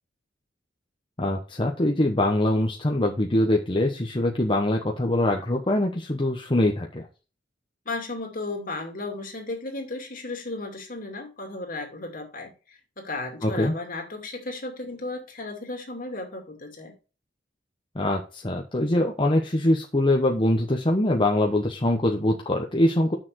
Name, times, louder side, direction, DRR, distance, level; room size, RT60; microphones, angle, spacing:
voice 1, 1.2-7.1 13.4-13.7 17.9-23.1, left 1 dB, 25° left, 1.1 m, -23 dB
voice 2, 7.9-17.0, left 2 dB, 50° left, 2.5 m, -35 dB
6.8 x 6.4 x 4.6 m
head